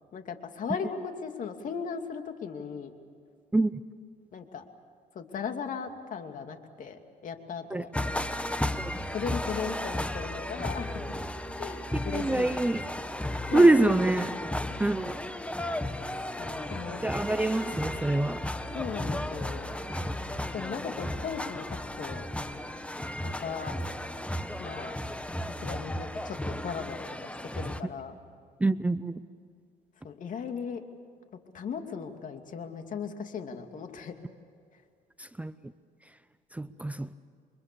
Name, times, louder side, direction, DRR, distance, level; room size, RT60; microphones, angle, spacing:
voice 1, 0.1-2.9 4.3-4.6 5.1-7.9 9.1-11.0 11.6-12.6 13.5-13.8 16.4-17.0 18.7-19.7 20.5-21.7 22.0-22.2 23.2-23.7 24.6-25.0 25.6-28.1 30.0-30.8 31.5-34.1, left 6 dB, 50° left, 2.6 m, -37 dB
sound 1, 7.9-27.8, left 1 dB, 5° left, 1.3 m, -34 dB
voice 2, 11.9-12.8 13.5-14.3 14.8-15.1 17.0-18.4 28.6-29.1 35.2-35.5 36.5-37.2, right 2 dB, 10° right, 0.6 m, -25 dB
29.5 x 24.5 x 7.0 m
cardioid pair, 110°, 17 cm